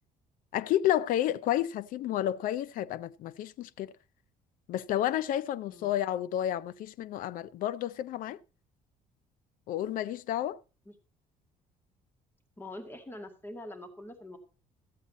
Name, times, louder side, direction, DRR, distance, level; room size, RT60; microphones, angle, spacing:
voice 1, 0.5-3.9 4.7-8.4 9.7-10.6, left 12 dB, 70° left, 0.5 m, -31 dB
voice 2, 12.6-14.4, left 1 dB, 15° left, 2.0 m, -44 dB
13.5 x 8.4 x 4.1 m
cardioid pair, 105°, 15 cm